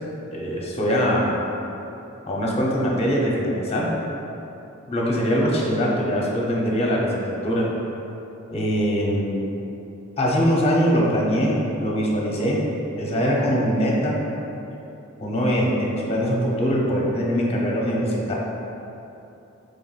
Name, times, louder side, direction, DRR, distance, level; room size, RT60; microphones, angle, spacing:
voice 1, 0.3-1.3 2.3-3.9 4.9-7.7 8.5-9.5 10.2-12.6 13.0-14.2 15.2-18.3, equal, 30° left, -3 dB, 0.6 m, -22 dB
5.5 x 3.3 x 2.3 m, 2.9 s
head